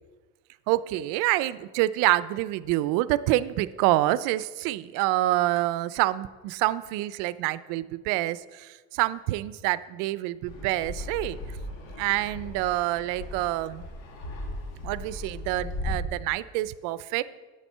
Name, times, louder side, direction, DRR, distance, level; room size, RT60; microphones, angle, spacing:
voice 1, 0.7-11.4 12.0-13.9 14.8-17.2, right 16 dB, 75° right, 17 dB, 0.5 m, -27 dB
Fixed-wing aircraft airplane, 10.5-16.0, left 1 dB, 85° left, 2.1 m, -37 dB
8.5 x 7.3 x 5.5 m, 1.3 s
cardioid pair, 170°, 32 cm